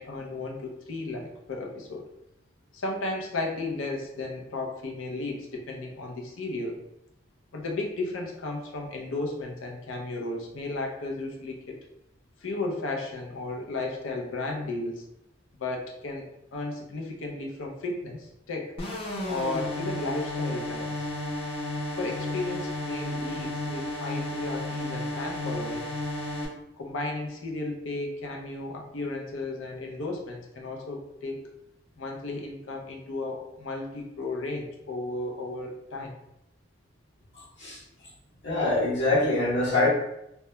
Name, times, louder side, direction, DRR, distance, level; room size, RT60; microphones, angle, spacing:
voice 1, 0.0-2.0 2.7-6.8 7.5-11.8 12.4-15.0 15.6-18.7 19.3-21.1 22.0-25.9 26.8-31.5 32.0-36.1, left 2 dB, 85° left, 0 dB, 0.5 m, -34 dB
sound 1, 18.8-26.5, left 1 dB, 30° left, 0.5 m, -33 dB
voice 2, 38.4-39.9, left 2 dB, 60° left, -8 dB, 0.8 m, -24 dB
2.2 x 2.1 x 2.9 m, 0.83 s
head